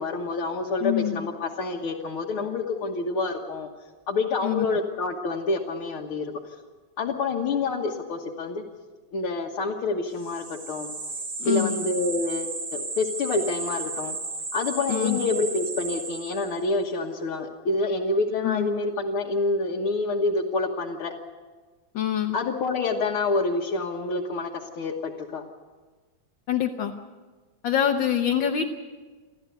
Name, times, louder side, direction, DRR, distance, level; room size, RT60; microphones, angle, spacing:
voice 1, 0.0-3.7 4.1-6.4 7.0-8.6 9.1-10.9 11.4-14.2 14.5-21.1 22.3-24.5 24.8-25.4, left 3 dB, 85° left, -3 dB, 2.3 m, -27 dB
voice 2, 0.8-1.2 4.4-4.6 11.4-11.8 14.9-15.2 18.4-18.7 21.9-22.4 26.5-26.9 27.6-28.7, left 10 dB, 70° left, 3 dB, 1.7 m, -25 dB
sound 1, 10.2-16.7, right 3 dB, 40° right, 2.4 m, -34 dB
29.0 x 12.5 x 8.2 m, 1.4 s
omnidirectional pair, 2.3 m